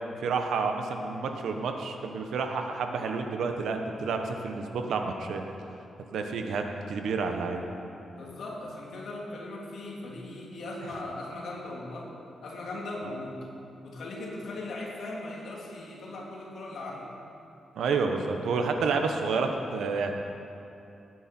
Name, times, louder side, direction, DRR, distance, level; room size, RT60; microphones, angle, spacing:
voice 1, 0.2-5.4 6.1-7.7 17.7-20.1, right 4 dB, 80° right, 4 dB, 1.2 m, -29 dB
voice 2, 8.1-12.1 12.4-13.4 13.8-17.1, left 2 dB, 65° left, -2 dB, 2.4 m, -38 dB
19.5 x 9.2 x 4.5 m, 2.7 s
wide cardioid pair, 175°, 0 cm